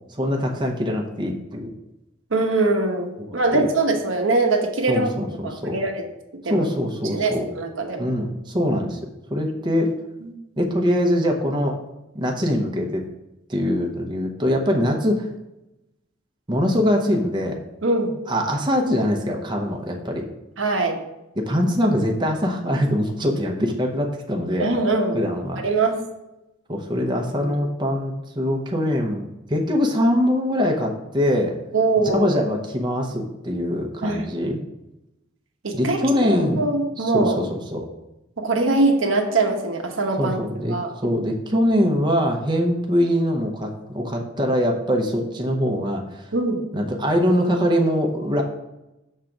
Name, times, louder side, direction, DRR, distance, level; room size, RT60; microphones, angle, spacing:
voice 1, 0.1-1.7 3.2-3.7 4.9-5.8 6.5-7.5 8.0-9.0 9.3-9.9 10.6-11.8 12.1-13.0 13.5-15.3 16.5-17.6 18.3-20.2 21.4-24.7 25.1-25.6 26.7-31.5 32.0-34.6 35.7-36.6 37.0-37.9 40.2-40.8 41.0-46.2 46.7-48.4, equal, 25° right, 1 dB, 0.8 m, -23 dB
voice 2, 2.3-5.1 5.4-6.1 6.4-6.7 7.1-8.1 10.2-10.3 17.8-18.1 20.6-21.0 24.6-25.2 25.6-26.0 27.4-27.5 31.7-32.3 34.0-34.3 35.6-36.0 36.6-37.4 38.4-40.4 40.7-40.9 46.3-46.6, right 3 dB, 75° right, 3 dB, 1.0 m, -22 dB
6.5 x 3.8 x 5.8 m, 0.92 s
head